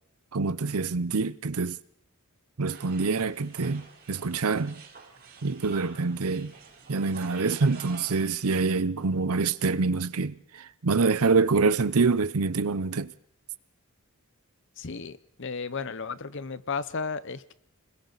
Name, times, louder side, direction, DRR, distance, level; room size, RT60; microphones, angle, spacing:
voice 1, 0.3-1.8 2.6-4.8 5.4-6.5 6.9-13.1, right 4 dB, 85° right, 0.7 m, -26 dB
sound 1, 2.7-8.3, right 5 dB, 45° right, 4.1 m, -48 dB
voice 2, 14.8-17.5, left 5 dB, 55° left, 0.8 m, -34 dB
30.0 x 21.5 x 4.1 m
head